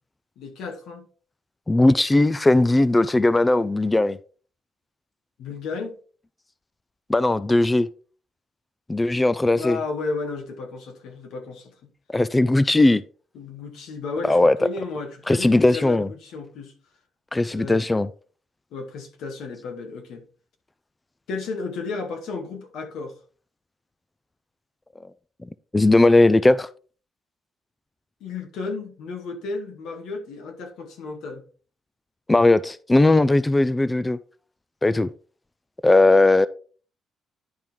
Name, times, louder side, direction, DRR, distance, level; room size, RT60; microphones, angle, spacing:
voice 1, 0.4-1.0 5.4-6.0 9.5-11.9 13.3-16.7 17.5-17.8 18.7-20.2 21.3-23.2 28.2-31.4, left 4 dB, 85° left, 1.7 m, -33 dB
voice 2, 1.7-4.2 7.1-7.9 8.9-9.8 12.1-13.0 14.2-14.6 15.3-16.1 17.3-18.1 25.7-26.7 32.3-34.2 34.8-35.1 35.8-36.5, left 2 dB, 15° left, 0.3 m, -18 dB
10.5 x 4.5 x 3.6 m
cardioid pair, 90°, 0 cm